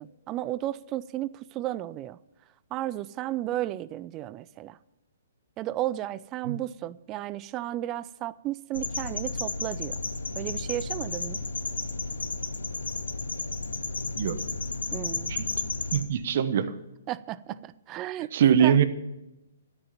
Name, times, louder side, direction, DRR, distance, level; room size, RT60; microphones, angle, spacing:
voice 1, 0.0-2.2 2.7-4.8 5.6-10.0 10.4-11.4 14.9-15.3 17.1-18.3 18.6-18.8, right 14 dB, 25° right, 0.4 m, -33 dB
sound 1, 8.7-16.0, left 3 dB, 80° left, 1.0 m, -32 dB
voice 2, 15.9-16.7 18.3-18.8, right 8 dB, 55° right, 0.9 m, -22 dB
13.0 x 6.6 x 8.7 m
figure-of-eight pair, 125°, 0 cm